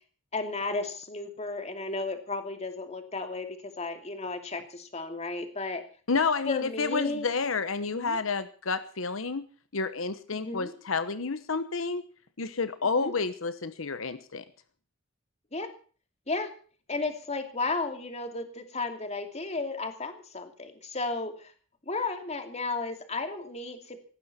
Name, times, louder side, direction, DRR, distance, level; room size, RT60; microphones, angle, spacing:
voice 1, 0.3-5.8 6.5-7.3 7.9-8.2 10.3-10.7 13.0-13.1 15.5-15.7 16.3-16.5 16.9-21.5 21.9-24.0, left 3 dB, 30° left, 7 dB, 2.7 m, -34 dB
voice 2, 6.1-9.4 9.7-12.0 12.4-14.4, left 4 dB, 80° left, 12 dB, 1.1 m, -30 dB
19.0 x 15.5 x 4.3 m, 0.42 s
head